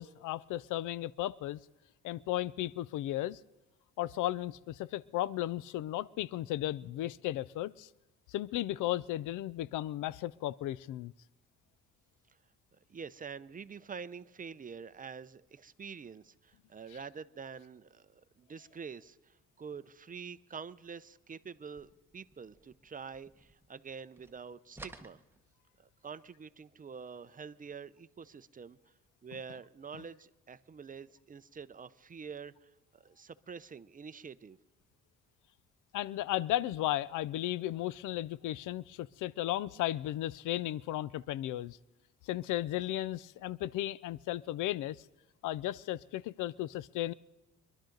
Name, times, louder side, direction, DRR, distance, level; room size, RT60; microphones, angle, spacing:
voice 1, 0.0-1.6 2.0-3.4 4.0-7.9 8.3-11.1 35.9-41.8 42.3-45.0 45.4-47.1, left 14 dB, 85° left, 0.5 m, -35 dB
voice 2, 12.9-25.2 25.8-28.8 29.2-32.5 32.9-34.6, right 6 dB, 30° right, 0.5 m, -46 dB
sound 1, 21.7-23.9 24.1-26.0, right 2 dB, 5° right, 1.1 m, -54 dB
25.0 x 12.0 x 3.9 m
cardioid pair, 90°, 30 cm